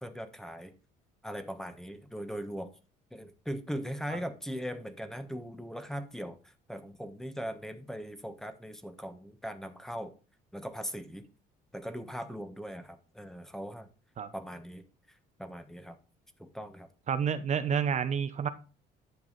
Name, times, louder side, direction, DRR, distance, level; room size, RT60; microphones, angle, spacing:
voice 1, 0.0-0.7 1.2-2.7 3.1-10.1 10.5-11.2 11.7-13.9 14.3-16.0 16.4-16.9, equal, 5° left, 9 dB, 1.3 m, -40 dB
voice 2, 17.1-18.5, right 7 dB, 45° right, 10 dB, 0.9 m, -29 dB
10.5 x 7.1 x 4.1 m, 0.34 s
cardioid pair, 110°, 17 cm